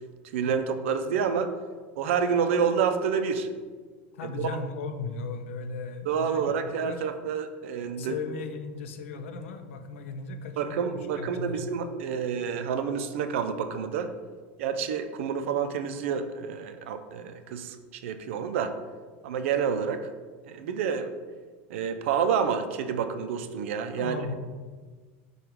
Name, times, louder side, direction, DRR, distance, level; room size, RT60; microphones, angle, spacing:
voice 1, 0.3-1.5 2.0-3.5 4.3-4.5 6.1-8.1 10.6-14.1 14.6-18.7 19.2-20.1 20.5-21.1 21.7-24.2, right 7 dB, 80° right, 8 dB, 0.4 m, -28 dB
voice 2, 4.1-7.1 8.0-11.6 24.0-24.4, left 4 dB, 90° left, 7 dB, 0.5 m, -37 dB
5.0 x 2.3 x 4.5 m, 1.5 s
supercardioid pair, 135°, 7 cm